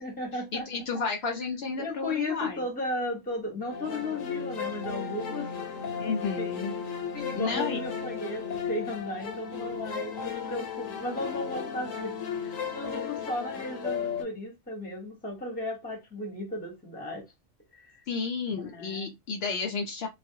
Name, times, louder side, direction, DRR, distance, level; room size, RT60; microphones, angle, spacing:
voice 1, 0.0-1.0 1.8-5.5 5.9-6.6 7.1-12.1 12.4-17.3 17.7-18.0 18.5-19.1, left 1 dB, 10° left, 0.6 m, -35 dB
voice 2, 0.5-2.6 6.0-6.7 7.4-7.8 18.1-20.1, left 4 dB, 60° left, 0.7 m, -32 dB
sound 1, 3.7-14.2, left 7 dB, 85° left, 1.1 m, -35 dB
2.4 x 2.0 x 2.6 m
omnidirectional pair, 1.3 m